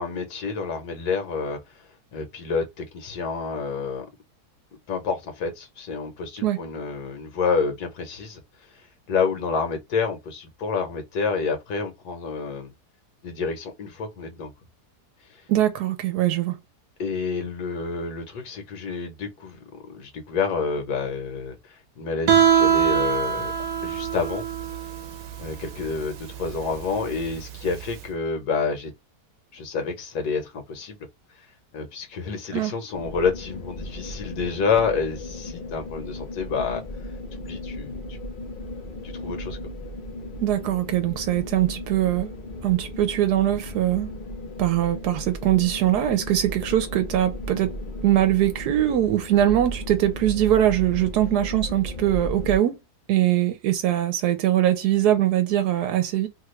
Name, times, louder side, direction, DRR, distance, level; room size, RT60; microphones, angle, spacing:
voice 1, 0.0-1.9 2.1-4.1 4.9-8.4 8.8-12.7 13.2-14.5 15.3-15.4 17.0-19.6 19.9-23.5 23.8-24.4 25.4-28.9 29.5-31.0 31.7-36.8 37.3-38.0 39.0-39.6, left 5 dB, 75° left, 1.4 m, -28 dB
voice 2, 15.5-16.6 32.5-32.7 40.4-42.3 42.6-44.1 44.6-47.7 48.0-52.8 53.1-56.3, right 12 dB, 80° right, 1.1 m, -22 dB
Guitar, 22.3-28.0, right 8 dB, 65° right, 1.0 m, -23 dB
sound 1, 32.9-52.6, equal, 45° left, 0.6 m, -35 dB
3.1 x 2.3 x 3.1 m
omnidirectional pair, 1.7 m